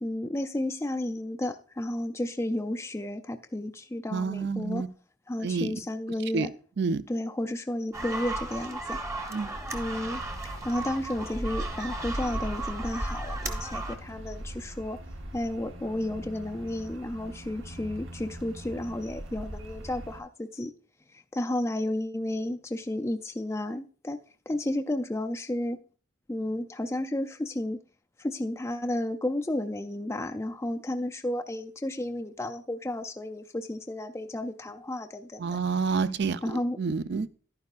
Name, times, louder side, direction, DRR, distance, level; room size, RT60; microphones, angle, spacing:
voice 1, 0.0-4.8 5.3-6.5 7.1-9.0 9.7-10.2 10.6-15.0 15.3-20.7 21.1-24.2 24.5-25.8 26.3-27.8 28.2-35.6 36.4-36.8, left 1 dB, 15° left, 0.4 m, -32 dB
voice 2, 4.1-4.9 5.4-5.7 6.3-6.5 6.8-7.0 9.3-9.5 35.4-37.3, right 5 dB, 55° right, 0.4 m, -28 dB
sound 1, 7.9-14.0, right 2 dB, 15° right, 0.9 m, -34 dB
sound 2, 9.7-20.2, right 1 dB, 75° right, 1.0 m, -43 dB
11.5 x 9.6 x 2.4 m
head